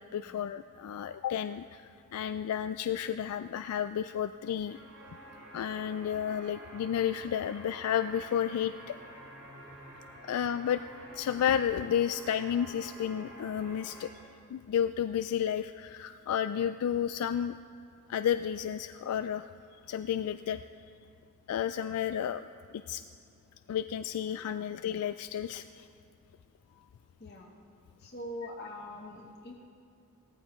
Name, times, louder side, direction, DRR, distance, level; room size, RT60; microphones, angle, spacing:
voice 1, 0.0-4.8 5.5-8.9 10.2-10.8 11.1-14.1 14.5-17.6 18.1-19.5 19.9-20.6 21.5-22.4 22.9-23.0 23.7-25.9, left 9 dB, 90° left, 10 dB, 0.3 m, -32 dB
sound 1, 4.7-14.1, right 1 dB, 65° right, 3.4 m, -49 dB
voice 2, 27.2-27.6 28.0-29.5, left 1 dB, 45° left, -1 dB, 1.0 m, -43 dB
18.0 x 14.0 x 3.1 m, 2.4 s
head